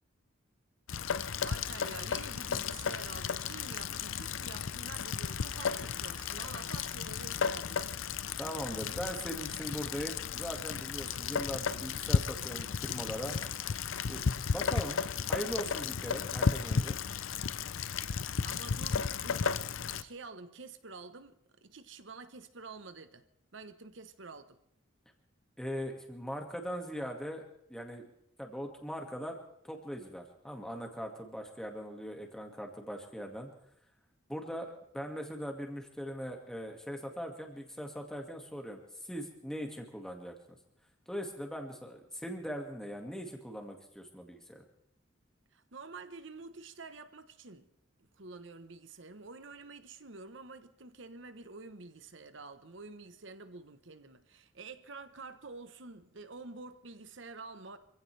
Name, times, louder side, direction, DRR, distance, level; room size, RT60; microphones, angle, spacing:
Rain, 0.9-20.0, left 6 dB, 85° left, 0.6 m, -34 dB
voice 1, 1.0-8.1 18.4-21.4 21.6-23.2 23.5-24.6 45.5-47.7 48.0-57.8, right 3 dB, 70° right, 1.1 m, -48 dB
voice 2, 8.4-13.4 14.1-14.3 14.5-15.0 15.3-17.0 25.6-27.4 27.7-28.0 28.4-29.4 29.6-33.5 34.3-40.6 41.1-44.6, equal, 5° left, 2.0 m, -40 dB
26.5 x 16.0 x 3.4 m
head